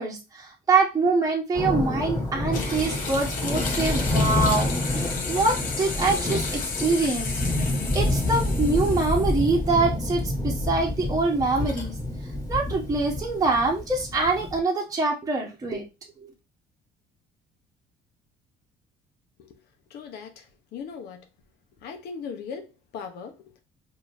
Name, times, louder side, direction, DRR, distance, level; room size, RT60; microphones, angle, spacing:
voice 1, 0.0-7.7 7.9-11.9 12.5-15.9 16.2-16.3, right 3 dB, 20° right, 1.2 m, -25 dB
Thunder, 1.5-14.6, left 1 dB, 20° left, 1.8 m, -28 dB
sound 1, 2.5-9.7 10.1-10.2 11.4-11.9, left 4 dB, 50° left, 1.1 m, -33 dB
voice 2, 19.9-20.5 20.7-21.2 21.8-23.6, left 6 dB, 75° left, 0.9 m, -38 dB
4.8 x 2.9 x 2.7 m
cardioid pair, 110°, 17 cm